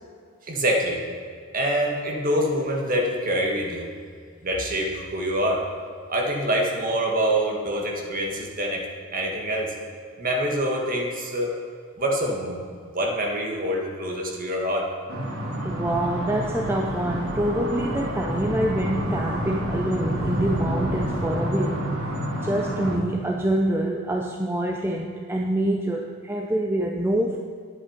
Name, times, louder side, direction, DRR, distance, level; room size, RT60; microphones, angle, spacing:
voice 1, 0.4-1.0 1.5-3.9 4.4-5.6 6.1-8.8 9.1-9.7 10.2-11.5 12.0-14.9, right 1 dB, 40° right, -1 dB, 1.7 m, -25 dB
sound 1, 15.1-23.0, equal, 75° right, 2.4 m, -29 dB
sound 2, 15.6-21.2, left 1 dB, 50° left, 1.9 m, -41 dB
voice 2, 15.6-22.0 22.4-27.4, right 1 dB, 10° right, 0 dB, 0.5 m, -26 dB
11.0 x 8.7 x 5.1 m, 2.1 s
head